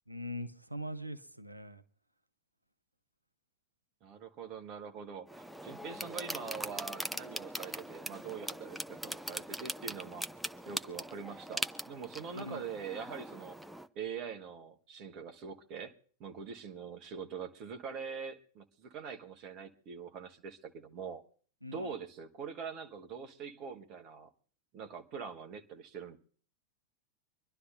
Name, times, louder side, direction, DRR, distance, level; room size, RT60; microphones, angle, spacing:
voice 1, 0.1-1.8 12.3-12.6 21.6-21.9, equal, 90° right, 9 dB, 0.7 m, -42 dB
voice 2, 4.0-10.3 10.7-13.6 13.9-15.9 16.2-21.2 21.7-24.3 24.7-26.2, right 6 dB, 40° right, 5 dB, 1.3 m, -43 dB
sound 1, 5.3-13.9, equal, ahead, 0.5 m, -41 dB
26.0 x 11.5 x 2.6 m, 0.43 s
figure-of-eight pair, 90°, 0 cm